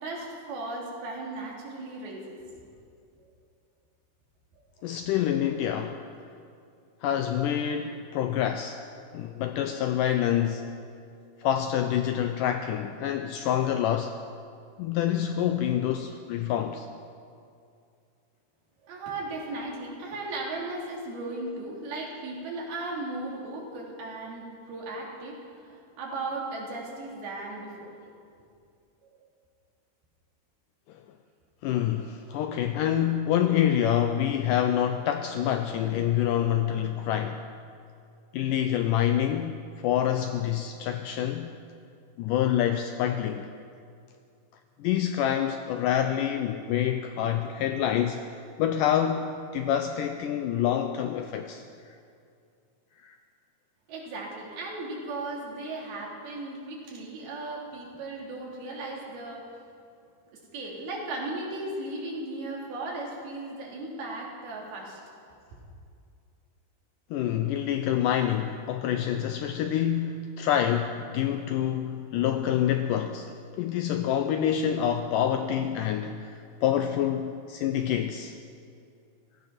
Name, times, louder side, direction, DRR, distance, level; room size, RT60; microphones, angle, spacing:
voice 1, 0.0-2.4 18.8-27.9 53.9-59.4 60.5-65.0 65.5-65.6, right 2 dB, 80° right, -3 dB, 4.6 m, -36 dB
voice 2, 4.8-6.0 7.0-8.8 9.1-10.6 11.4-14.2 14.8-16.9 30.9-31.0 31.6-37.4 38.3-41.5 42.2-43.5 44.8-52.0 53.0-53.2 67.1-78.4, left 10 dB, 85° left, 7 dB, 1.9 m, -27 dB
16.5 x 15.0 x 5.9 m, 2.4 s
omnidirectional pair, 4.4 m